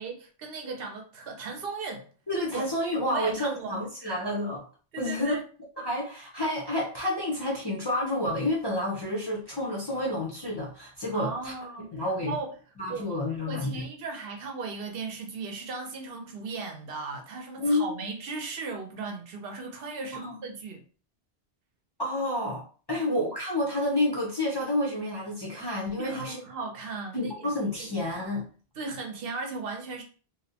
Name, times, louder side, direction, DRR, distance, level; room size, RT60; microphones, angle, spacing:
voice 1, 0.0-2.1 2.5-2.7 3.1-4.2 4.9-5.4 11.1-11.9 12.2-12.5 12.9-20.8 22.9-23.2 26.0-27.5 27.8-27.9 28.8-30.0, right 4 dB, 65° right, 0.8 m, -37 dB
voice 2, 2.3-4.6 5.0-5.3 5.8-11.5 11.9-12.4 12.8-13.8 17.6-17.9 20.1-20.4 22.0-22.6 22.9-26.4 27.1-28.5, left 1 dB, 30° left, 0.5 m, -29 dB
2.6 x 2.0 x 2.7 m
omnidirectional pair, 1.1 m